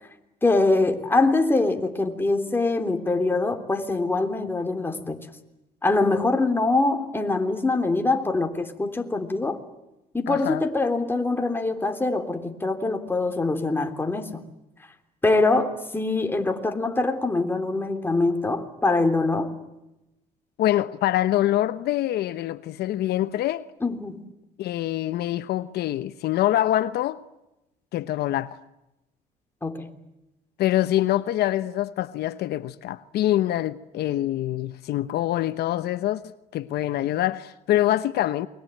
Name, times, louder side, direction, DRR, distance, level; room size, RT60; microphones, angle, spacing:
voice 1, 0.4-5.2 5.8-9.6 10.1-14.4 15.2-19.6 23.8-24.2 29.6-29.9, left 3 dB, 10° left, 3.3 m, -24 dB
voice 2, 10.3-10.6 20.6-23.6 24.6-27.2 27.9-28.6 30.6-38.5, left 13 dB, 70° left, 1.0 m, -25 dB
28.5 x 22.5 x 9.2 m
cardioid pair, 110°, 17 cm